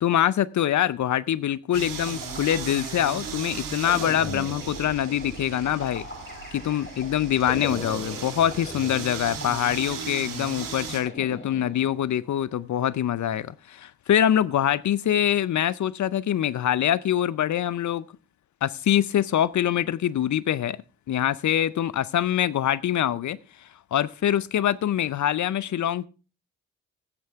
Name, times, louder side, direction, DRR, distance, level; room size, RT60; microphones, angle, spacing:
voice 1, 0.0-6.0 6.5-18.0 18.6-20.8 21.1-23.4 23.9-26.1, left 10 dB, 60° left, 0.6 m, -24 dB
sound 1, 1.7-11.0, right 6 dB, 80° right, 2.0 m, -36 dB
sound 2, 1.8-12.2, left 2 dB, 35° left, 6.6 m, -41 dB
17.0 x 7.6 x 3.5 m
supercardioid pair, 45°, 33 cm